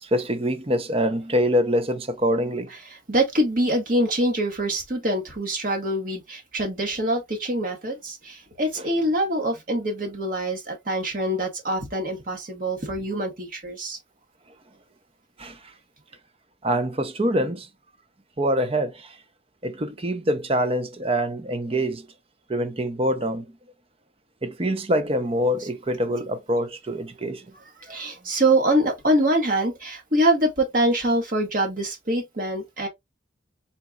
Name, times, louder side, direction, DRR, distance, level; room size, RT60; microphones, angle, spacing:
voice 1, 0.0-2.7 13.1-13.2 15.4-15.6 16.6-17.7 18.4-19.2 19.6-22.1 22.5-23.5 24.4-27.5 27.9-28.0, equal, 30° right, 0.7 m, -25 dB
voice 2, 2.9-14.0 25.6-25.7 27.8-32.9, right 1 dB, 50° right, 1.5 m, -24 dB
4.3 x 4.1 x 2.3 m
head